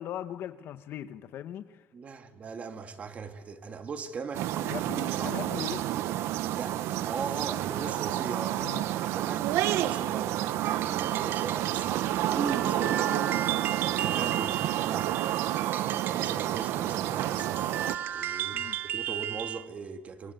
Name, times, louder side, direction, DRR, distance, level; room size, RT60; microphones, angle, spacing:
voice 1, 0.0-1.8 4.6-6.1 8.6-8.9 18.5-18.8, left 11 dB, 60° left, 1.1 m, -39 dB
voice 2, 1.9-5.4 6.6-8.7 9.1-10.4 10.8-13.5 13.9-15.2 16.0-17.7 18.1-20.3, right 5 dB, 35° right, 1.9 m, -39 dB
sound 1, 4.3-18.0, right 13 dB, 85° right, 1.0 m, -29 dB
sound 2, 10.6-19.7, right 11 dB, 50° right, 1.0 m, -36 dB
26.0 x 25.0 x 9.3 m
cardioid pair, 155°, 4 cm